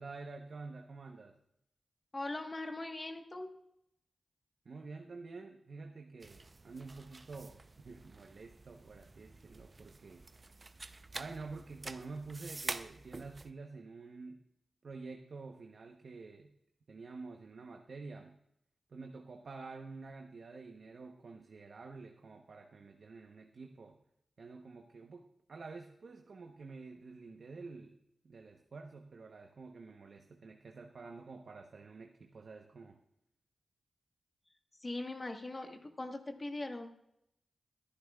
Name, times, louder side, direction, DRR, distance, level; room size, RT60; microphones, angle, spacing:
voice 1, 0.0-1.3 4.6-7.6 7.8-10.2 11.1-14.4 14.8-16.5 16.9-18.3 18.9-24.0 24.4-28.0 28.2-33.0, right 4 dB, 70° right, 4 dB, 0.9 m, -49 dB
voice 2, 2.1-3.5 34.8-36.9, left 2 dB, 40° left, 5 dB, 1.3 m, -40 dB
sound 1, 6.2-13.5, right 3 dB, 40° right, 0.6 m, -47 dB
22.0 x 10.0 x 2.4 m, 0.75 s
cardioid pair, 50°, 0 cm